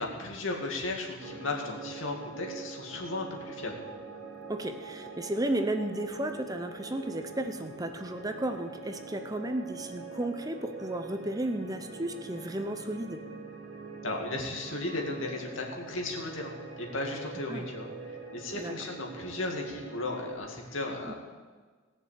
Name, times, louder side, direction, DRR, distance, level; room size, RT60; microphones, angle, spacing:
voice 1, 0.0-3.8 14.0-16.5 16.8-17.9 18.3-21.1, left 2 dB, 75° left, 1 dB, 2.3 m, -35 dB
sound 1, 1.2-20.3, right 4 dB, 90° right, 2.3 m, -44 dB
voice 2, 4.5-13.2 17.5-17.6 18.5-18.7 21.1-21.2, right 1 dB, 20° right, 7 dB, 0.8 m, -33 dB
18.0 x 6.8 x 8.5 m, 1.4 s
head